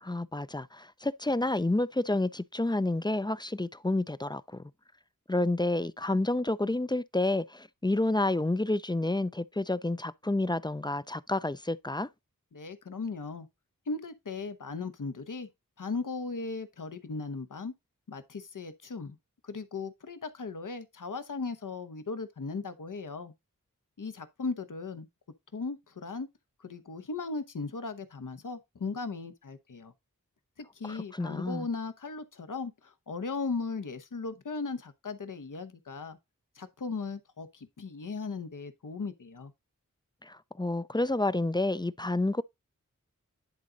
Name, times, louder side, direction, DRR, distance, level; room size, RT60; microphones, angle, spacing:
voice 1, 0.0-4.6 5.3-12.1 30.8-31.7 40.2-42.4, left 2 dB, 15° left, 0.4 m, -29 dB
voice 2, 12.5-13.5 13.9-15.5 15.8-17.7 18.1-19.2 19.4-23.3 24.0-25.1 25.5-26.3 26.6-29.9 30.8-36.2 36.6-39.5, left 4 dB, 75° left, 1.0 m, -37 dB
10.5 x 3.9 x 3.9 m
wide cardioid pair, 45°, 32 cm